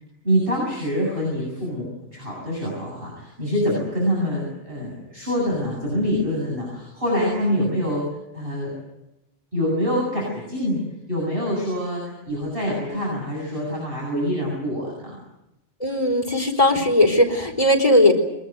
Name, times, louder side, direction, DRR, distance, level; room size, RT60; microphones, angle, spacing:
voice 1, 0.2-8.0 8.3-8.7 9.5-10.8 11.1-15.1, equal, 50° right, -3 dB, 8.2 m, -25 dB
voice 2, 15.8-18.1, left 1 dB, 30° left, 1 dB, 4.2 m, -18 dB
23.5 x 20.5 x 9.4 m, 0.91 s
omnidirectional pair, 1.2 m